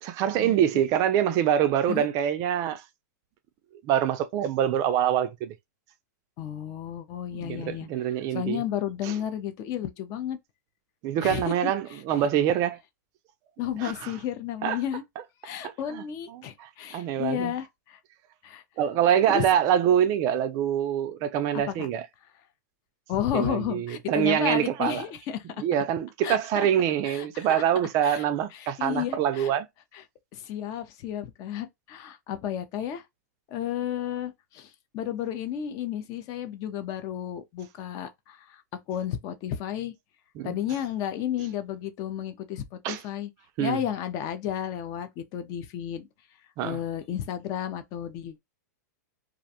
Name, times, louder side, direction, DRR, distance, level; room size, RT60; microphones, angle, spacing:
voice 1, 0.0-2.8 3.8-5.5 7.3-8.6 9.0-9.1 11.0-12.8 13.8-14.1 14.6-14.8 15.6-16.0 16.3-17.5 18.8-22.1 23.3-25.0 25.6-29.7 40.4-40.6 42.8-43.0 43.6-43.8 46.6-46.8, right 10 dB, 35° right, 0.3 m, -25 dB
voice 2, 6.4-7.9 8.3-10.4 11.2-12.2 13.6-15.0 15.4-18.0 18.4-18.6 19.3-19.4 21.5-21.9 23.1-25.6 26.2-26.7 27.0-27.6 28.0-28.2 28.5-29.5 29.9-30.0 30.3-33.0 33.5-38.6 38.9-39.9 40.4-43.3 43.6-46.1 46.6-48.4, left 10 dB, 35° left, 0.5 m, -32 dB
2.4 x 2.2 x 2.7 m
hypercardioid pair, 140°, 10 cm